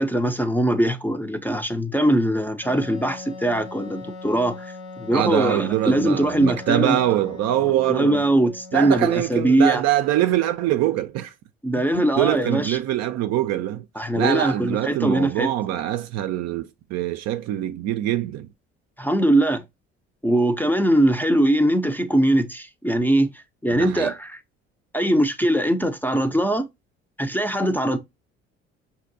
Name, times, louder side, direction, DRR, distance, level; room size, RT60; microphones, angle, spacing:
voice 1, 0.0-7.0 7.9-9.8 11.6-12.8 14.0-15.5 19.0-19.6 20.2-23.3 23.6-24.4 24.9-26.7 27.2-28.0, right 1 dB, 5° left, 0.5 m, -21 dB
Wind instrument woodwind instrument, 2.6-9.1, left 3 dB, 85° left, 1.3 m, -40 dB
voice 2, 5.1-8.2 8.7-11.3 11.8-11.9 12.2-13.9 14.2-18.5 23.7-24.1, right 12 dB, 55° right, 0.5 m, -23 dB
5.7 x 2.8 x 2.6 m
hypercardioid pair, 60°, 31 cm